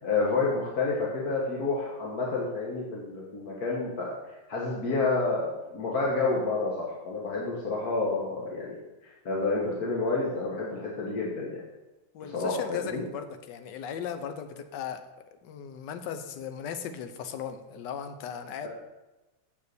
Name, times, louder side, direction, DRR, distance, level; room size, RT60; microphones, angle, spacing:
voice 1, 0.0-4.1 4.5-8.8 9.0-11.6 12.3-13.0 18.6-18.7, left 3 dB, 50° left, -4 dB, 1.8 m, -29 dB
voice 2, 12.1-15.0 15.4-18.7, left 8 dB, 65° left, 8 dB, 1.4 m, -37 dB
8.1 x 6.8 x 6.9 m, 1.1 s
omnidirectional pair, 2.2 m